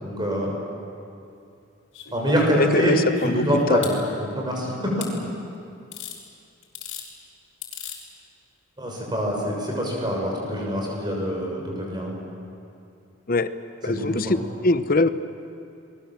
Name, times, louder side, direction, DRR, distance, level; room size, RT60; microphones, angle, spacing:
voice 1, 0.0-0.5 2.1-3.9 4.2-5.1 8.8-12.1 13.8-14.4, equal, 20° right, -1 dB, 6.2 m, -25 dB
sound 1, 1.9-4.0 5.0-5.1 5.9-6.2 6.6-7.1 7.6-8.0 9.2-9.3, left 7 dB, 80° left, 4.9 m, -38 dB
voice 2, 2.6-3.4 3.7-3.8 13.3-13.5 13.8-14.4 14.6-15.1, left 2 dB, 45° left, 11 dB, 0.8 m, -22 dB
29.5 x 21.5 x 7.5 m, 2.6 s
head